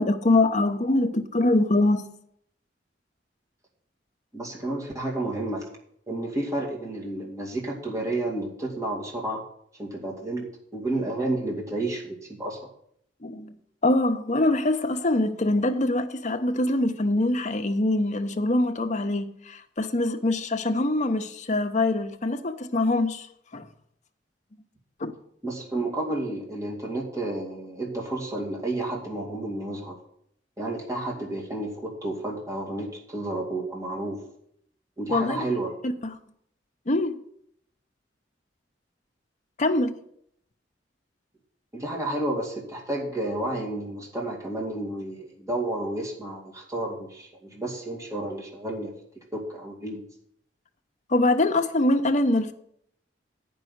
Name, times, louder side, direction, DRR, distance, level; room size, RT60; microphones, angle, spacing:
voice 1, 0.0-2.0 13.2-13.6 13.8-23.3 23.5-23.7 25.0-25.1 35.1-35.4 36.0-36.2 36.9-37.2 39.6-39.9 51.1-52.5, left 2 dB, 40° left, 0.9 m, -24 dB
voice 2, 4.3-5.6 6.1-9.4 9.8-10.5 10.7-12.6 25.4-30.0 30.6-34.2 35.0-35.7 41.7-48.9 49.3-50.1, right 2 dB, 20° right, 2.3 m, -31 dB
9.6 x 5.5 x 8.0 m
head